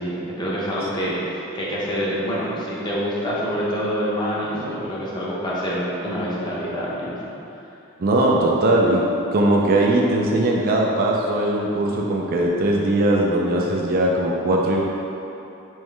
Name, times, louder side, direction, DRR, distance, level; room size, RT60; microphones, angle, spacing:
voice 1, 0.0-7.1, equal, 20° left, -7 dB, 0.7 m, -26 dB
voice 2, 8.0-9.0 9.3-14.8, right 1 dB, 45° right, -2 dB, 0.4 m, -19 dB
4.6 x 3.2 x 3.3 m, 2.9 s
head